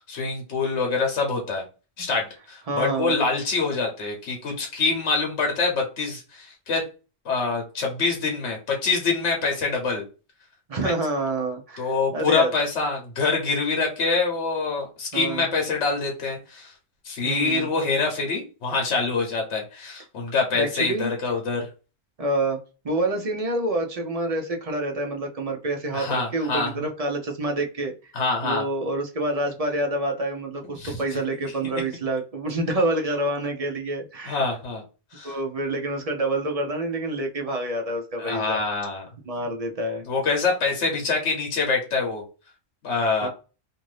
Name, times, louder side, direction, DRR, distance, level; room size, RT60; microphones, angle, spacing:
voice 1, 0.0-1.6 2.0-6.8 7.2-10.0 10.8-10.9 11.8-16.7 17.0-21.7 25.9-26.7 28.1-28.6 30.8-31.0 34.3-34.8 35.1-35.3 38.2-39.0 40.1-42.2 42.8-43.3, left 4 dB, 85° left, 1 dB, 1.1 m, -25 dB
voice 2, 2.7-3.2 10.7-12.5 15.1-15.4 17.2-17.7 20.5-21.1 22.2-22.6 22.8-28.1 28.4-34.5 35.2-38.6 39.2-40.1 43.2-43.3, right 1 dB, 45° right, 2 dB, 0.6 m, -27 dB
2.6 x 2.6 x 3.1 m, 0.33 s
omnidirectional pair, 1.2 m